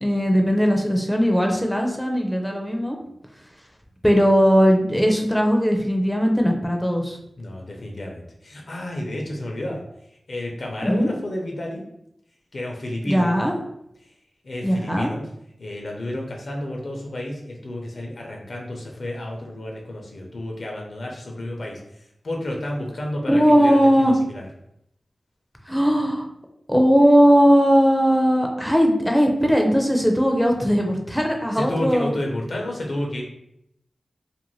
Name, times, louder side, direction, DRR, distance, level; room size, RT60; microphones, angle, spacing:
voice 1, 0.0-3.0 4.0-7.2 10.8-11.1 13.1-13.5 14.6-15.1 23.3-24.1 25.7-26.3 26.7-32.1, equal, 5° left, 2 dB, 0.4 m, -18 dB
voice 2, 7.4-9.8 10.3-11.8 12.5-13.3 14.4-15.3 15.6-21.8 22.2-24.4 31.5-33.2, left 1 dB, 65° left, 0 dB, 0.6 m, -31 dB
2.5 x 2.1 x 3.1 m, 0.78 s
wide cardioid pair, 60°, 0 cm